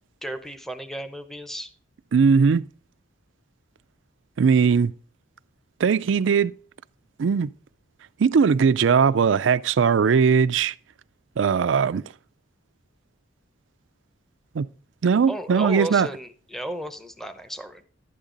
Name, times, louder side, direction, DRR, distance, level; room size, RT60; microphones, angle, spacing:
voice 1, 0.2-1.7 15.3-17.8, equal, ahead, 0.8 m, -34 dB
voice 2, 2.1-2.6 4.4-4.9 5.8-6.5 7.2-7.5 8.2-10.7 11.4-12.0 14.5-14.7 15.0-16.1, right 6 dB, 75° right, 0.4 m, -19 dB
12.0 x 8.6 x 3.9 m
head